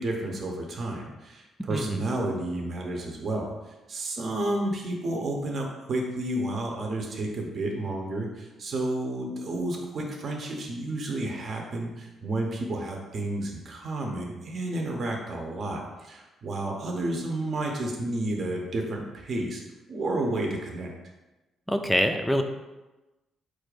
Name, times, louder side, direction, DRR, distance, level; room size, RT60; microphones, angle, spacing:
voice 1, 0.0-3.5 3.9-19.6 19.9-20.9, right 1 dB, 50° right, 1 dB, 0.8 m, -31 dB
voice 2, 1.7-2.0 21.7-22.4, equal, 5° left, 6 dB, 0.4 m, -25 dB
4.4 x 2.5 x 4.8 m, 1.1 s
cardioid pair, 90°, 0 cm